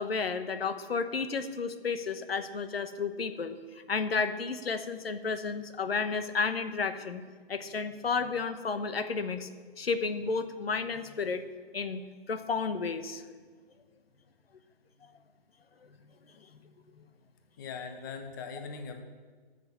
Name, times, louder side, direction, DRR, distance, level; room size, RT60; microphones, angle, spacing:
voice 1, 0.0-3.6 3.9-7.2 7.5-9.5 9.8-11.4 11.7-12.0 12.3-13.2, left 4 dB, 75° left, 10 dB, 1.1 m, -32 dB
voice 2, 17.6-19.0, left 5 dB, 20° left, 6 dB, 0.7 m, -40 dB
13.0 x 6.2 x 6.9 m, 1.5 s
hypercardioid pair, 155°, 30 cm